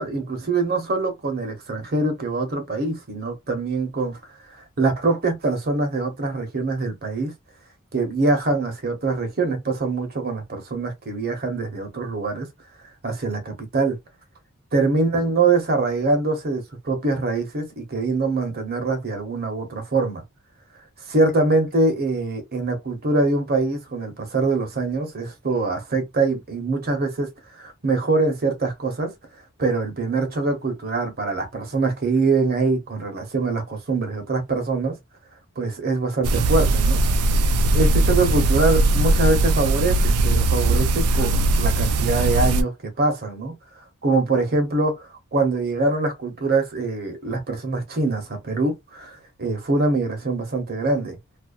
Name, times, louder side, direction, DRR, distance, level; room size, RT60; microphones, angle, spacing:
voice 1, 0.0-4.2 4.5-7.3 7.9-12.5 13.0-14.0 14.7-20.2 21.1-27.3 27.6-29.1 29.6-35.0 35.6-37.0 37.7-43.5 44.0-51.2, right 3 dB, 45° right, 0.9 m, -24 dB
sound 1, 36.2-42.6, right 2 dB, 80° right, 0.4 m, -19 dB
2.5 x 2.1 x 2.3 m
head